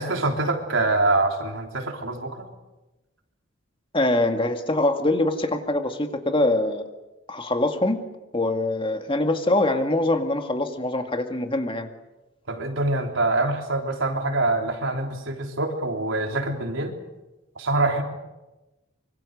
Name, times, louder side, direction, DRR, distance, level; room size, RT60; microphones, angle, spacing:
voice 1, 0.0-2.5 12.5-17.0 17.6-18.0, right 2 dB, 80° right, 2 dB, 3.5 m, -25 dB
voice 2, 3.9-6.9 7.3-8.0 8.3-11.9, left 2 dB, 25° left, 5 dB, 2.1 m, -23 dB
25.0 x 24.5 x 6.6 m, 1.1 s
head